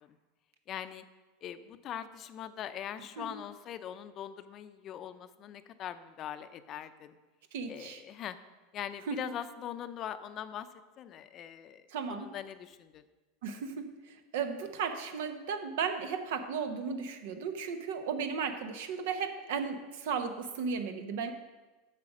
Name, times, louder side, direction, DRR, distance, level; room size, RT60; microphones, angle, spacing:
voice 1, 0.7-1.0 1.4-7.2 7.7-8.4 8.7-10.7 11.0-11.8 12.1-13.0, left 10 dB, 40° left, 12 dB, 0.5 m, -41 dB
voice 2, 7.5-8.0 9.1-9.2 11.9-12.3 13.4-21.3, right 6 dB, 75° right, 8 dB, 1.0 m, -35 dB
7.7 x 6.6 x 6.1 m, 1.2 s
supercardioid pair, 125°, 0 cm